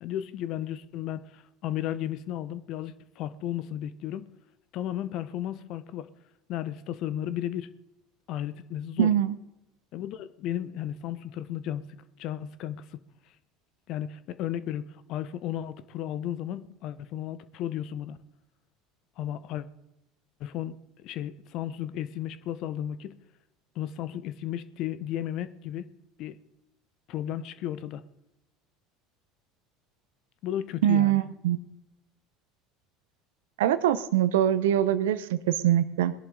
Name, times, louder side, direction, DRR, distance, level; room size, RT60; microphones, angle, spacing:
voice 1, 0.0-4.3 4.7-6.1 6.5-7.7 8.3-9.1 9.9-11.8 12.2-12.8 13.9-18.2 19.2-19.6 20.4-23.2 23.7-25.9 26.2-26.4 27.1-28.0 30.4-31.2, left 11 dB, 55° left, 14 dB, 0.9 m, -34 dB
voice 2, 9.0-9.3 30.8-31.6 33.6-36.1, right 11 dB, 75° right, 14 dB, 0.8 m, -23 dB
21.0 x 11.0 x 4.0 m, 0.90 s
hypercardioid pair, 70°, 0 cm